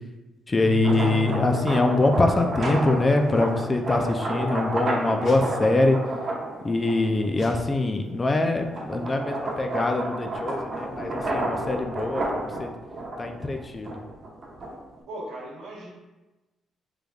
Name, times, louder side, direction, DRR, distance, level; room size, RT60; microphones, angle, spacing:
voice 1, 0.5-6.0 6.6-12.7 13.2-14.0, left 2 dB, 25° left, 4 dB, 0.4 m, -24 dB
Keyboard (musical), 0.6-3.5, left 4 dB, 75° left, 1.4 m, -33 dB
Thick Paper Flapping, 0.7-7.3 7.8-15.0, right 1 dB, 50° right, 1.1 m, -31 dB
sound 1, 5.2-5.5 7.3-7.6 7.9-8.2 8.7-8.8, left 1 dB, 45° left, 1.2 m, -35 dB
voice 2, 15.1-15.9, right 1 dB, 85° right, -4 dB, 1.2 m, -37 dB
5.2 x 3.2 x 2.3 m, 1.1 s
cardioid pair, 90°, 0 cm